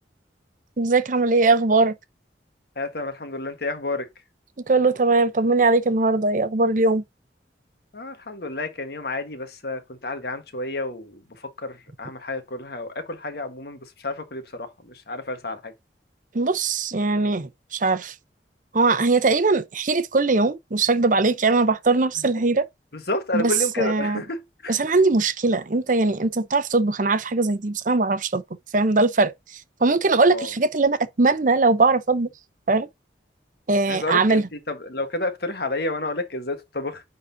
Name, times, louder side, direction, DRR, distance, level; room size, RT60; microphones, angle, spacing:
voice 1, 0.8-1.9 4.7-7.0 16.3-18.1 18.7-22.7 23.3-23.5 23.8-24.2 24.7-28.4 28.7-32.3 32.7-32.9 33.7-34.4, right 3 dB, 45° right, 0.7 m, -20 dB
voice 2, 2.8-4.1 7.9-15.7 22.2-22.3 22.9-24.8 30.3-30.5 33.9-37.0, left 2 dB, 60° left, 1.4 m, -30 dB
9.5 x 4.0 x 2.8 m
head